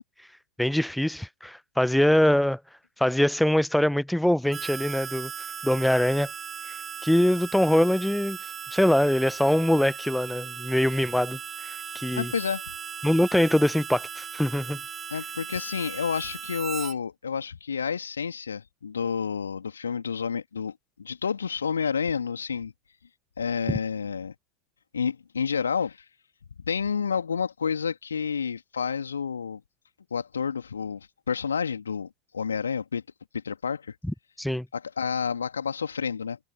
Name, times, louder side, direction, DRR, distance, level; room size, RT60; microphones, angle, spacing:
voice 1, 0.6-2.6 3.0-5.3 5.6-6.3 7.0-8.4 8.7-12.3 13.0-14.8 34.1-34.7, left 1 dB, ahead, 1.0 m, -23 dB
Harmonica, 4.5-16.9, right 7 dB, 20° right, 2.3 m, -38 dB
voice 2, 12.1-12.6 15.1-22.7 23.4-24.3 24.9-26.0 26.7-29.6 30.1-33.0 33.3-34.0 34.7-36.4, left 6 dB, 70° left, 2.7 m, -30 dB
figure-of-eight pair, 90°, 0 cm